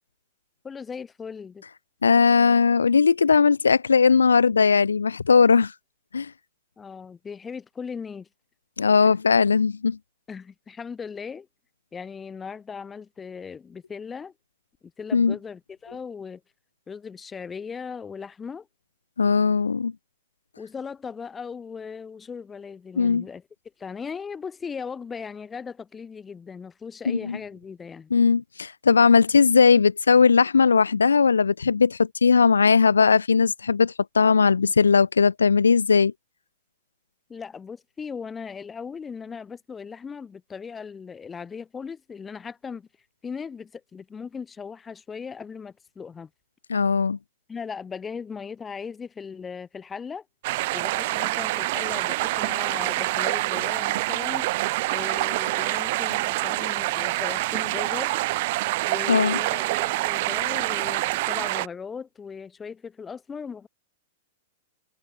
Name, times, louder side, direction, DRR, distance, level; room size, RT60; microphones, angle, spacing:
voice 1, 0.6-1.6 6.8-8.3 10.3-11.5 11.9-14.3 15.0-16.4 16.9-18.7 20.6-23.4 23.8-28.1 37.3-42.9 43.2-46.3 47.5-50.2 50.7-54.4 54.9-58.1 58.9-63.7, left 6 dB, 15° left, 2.8 m, -38 dB
voice 2, 2.0-5.7 6.1-6.3 8.8-10.0 15.1-15.3 19.2-19.9 23.0-23.2 27.1-27.4 28.1-36.1 46.7-47.2 59.1-59.4, left 5 dB, 80° left, 0.3 m, -19 dB
sound 1, 50.4-61.7, right 20 dB, 55° right, 0.4 m, -26 dB
figure-of-eight pair, 105°, 0 cm